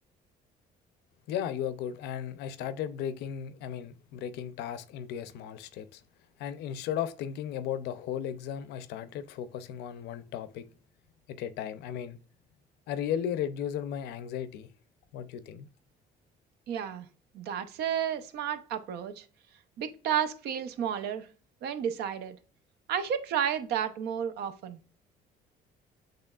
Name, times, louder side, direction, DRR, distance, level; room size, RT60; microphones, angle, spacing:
voice 1, 1.3-6.0 6.4-10.6 11.3-12.2 12.9-14.7 15.1-15.7, left 9 dB, 85° left, 0.5 m, -35 dB
voice 2, 16.7-17.1 17.3-19.2 19.8-21.3 21.6-22.3 22.9-24.8, right 8 dB, 75° right, 0.6 m, -32 dB
6.7 x 3.2 x 2.3 m
cardioid pair, 110°, 17 cm